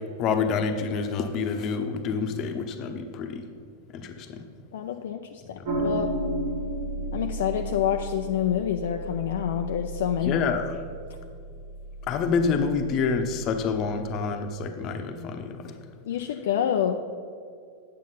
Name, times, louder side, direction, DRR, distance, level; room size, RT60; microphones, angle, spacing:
voice 1, 0.2-3.4 3.9-4.4 5.8-5.9 10.2-10.7 12.1-15.7, left 5 dB, 35° left, 6 dB, 0.9 m, -27 dB
voice 2, 4.7-6.1 7.1-10.4 16.1-17.1, left 9 dB, 60° left, 5 dB, 0.4 m, -27 dB
sound 1, 5.6-14.2, right 1 dB, 55° right, 1.8 m, -34 dB
9.0 x 7.3 x 5.7 m, 2.3 s
figure-of-eight pair, 90°, 0 cm